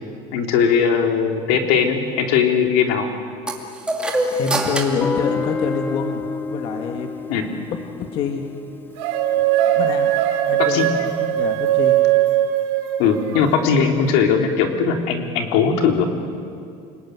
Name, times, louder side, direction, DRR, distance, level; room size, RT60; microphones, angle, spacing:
voice 1, 0.3-3.1 7.3-7.5 10.6-10.9 13.0-16.1, left 6 dB, 75° left, 3 dB, 3.6 m, -19 dB
sound 1, 3.5-6.2, right 1 dB, 5° right, 2.3 m, -26 dB
voice 2, 4.3-7.1 7.7-8.4 9.7-10.1 10.5-11.1 11.3-12.0, left 6 dB, 45° left, 4 dB, 1.7 m, -26 dB
Guitar, 5.0-9.9, left 4 dB, 15° left, 0.7 m, -29 dB
sound 2, 9.0-13.5, right 12 dB, 85° right, 3.3 m, -19 dB
29.0 x 20.0 x 9.4 m, 2.3 s
cardioid pair, 165°, 13 cm